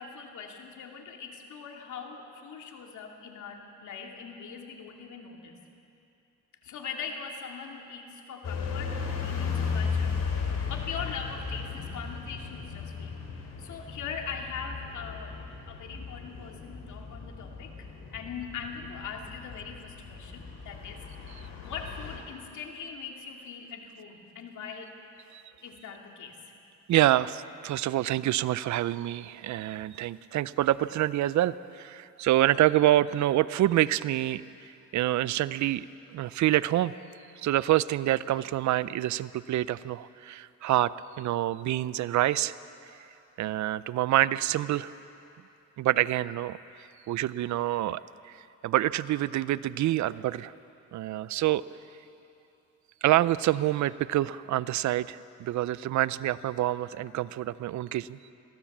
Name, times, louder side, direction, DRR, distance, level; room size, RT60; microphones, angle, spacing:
voice 1, 0.0-5.6 6.6-13.2 13.6-24.9 25.6-26.5, left 6 dB, 75° left, 2 dB, 2.6 m, -41 dB
sound 1, 8.4-22.2, left 5 dB, 55° left, 3.8 m, -36 dB
voice 2, 26.9-34.4 34.9-35.9 36.1-36.9 37.4-40.9 41.2-42.5 43.4-44.9 45.8-46.6 47.1-48.4 48.6-50.5 50.9-51.6 53.0-58.2, right 14 dB, 70° right, 18 dB, 0.6 m, -26 dB
22.5 x 16.5 x 7.3 m, 2.7 s
cardioid pair, 90°, 30 cm